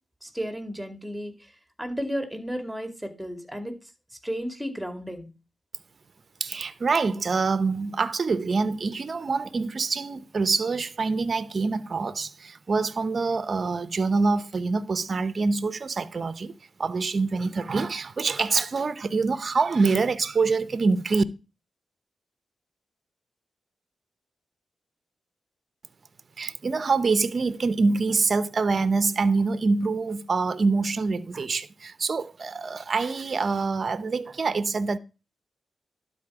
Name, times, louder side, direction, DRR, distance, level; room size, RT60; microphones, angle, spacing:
voice 1, 0.2-1.5 1.8-3.8 4.2-5.3, equal, 5° right, 2.3 m, -33 dB
voice 2, 6.4-16.5 16.8-21.2 26.4-35.0, right 4 dB, 55° right, 0.6 m, -25 dB
12.0 x 4.3 x 4.8 m
supercardioid pair, 40°, 0 cm